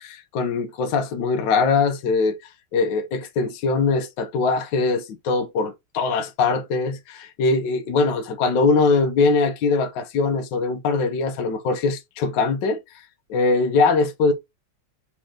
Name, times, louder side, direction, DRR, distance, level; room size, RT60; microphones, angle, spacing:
voice 1, 0.0-2.4 2.7-12.8 13.3-14.3, left 4 dB, 65° left, 1.5 m, -22 dB
4.3 x 3.2 x 3.6 m
omnidirectional pair, 2.3 m